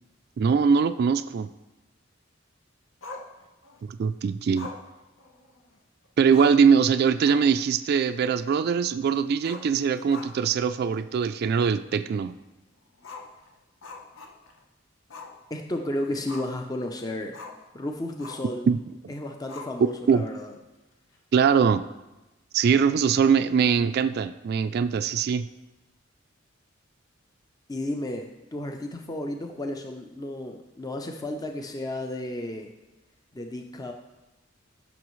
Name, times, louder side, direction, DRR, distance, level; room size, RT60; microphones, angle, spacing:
voice 1, 0.4-1.5 3.9-4.7 6.2-12.3 18.7-18.8 20.1-20.3 21.3-21.8 22.5-25.5, right 6 dB, 55° right, 11 dB, 0.3 m, -22 dB
Growling, 3.0-3.8 4.5-5.8 6.0-6.1 6.3-6.7 7.1-7.6 7.9-8.0 9.3-10.6 10.9-11.0 11.6-11.7 13.0-14.6 15.1-15.4 15.7-16.7 17.3-17.6 18.2-18.6 19.5-20.1, left 3 dB, 80° left, 1.0 m, -42 dB
voice 2, 15.5-17.4 17.7-18.7 19.1-20.5 27.7-32.7 33.3-33.9, left 1 dB, 20° left, 4 dB, 0.5 m, -33 dB
14.5 x 6.2 x 3.1 m, 1.0 s
head